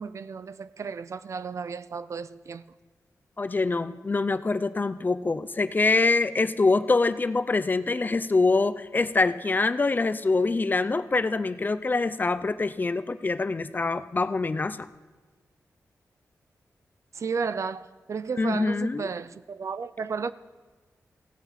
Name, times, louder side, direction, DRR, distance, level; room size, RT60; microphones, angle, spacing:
voice 1, 0.0-2.6 17.1-20.3, right 5 dB, 55° right, 0.4 m, -33 dB
voice 2, 3.4-14.9 18.4-19.1, left 3 dB, 30° left, 0.5 m, -25 dB
16.5 x 8.9 x 4.2 m
wide cardioid pair, 95°, 6 cm